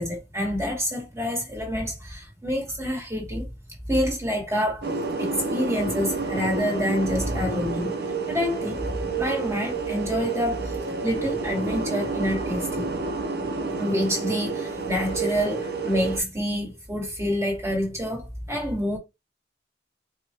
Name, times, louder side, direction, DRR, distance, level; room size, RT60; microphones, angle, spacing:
voice 1, 0.0-3.5 3.9-4.9 5.2-7.9 8.3-8.9 9.2-10.7 11.0-12.9 13.8-19.0, equal, 15° right, 1.5 m, -27 dB
sound 1, 4.8-16.2, right 4 dB, 60° right, 0.8 m, -29 dB
4.7 x 2.2 x 2.9 m
head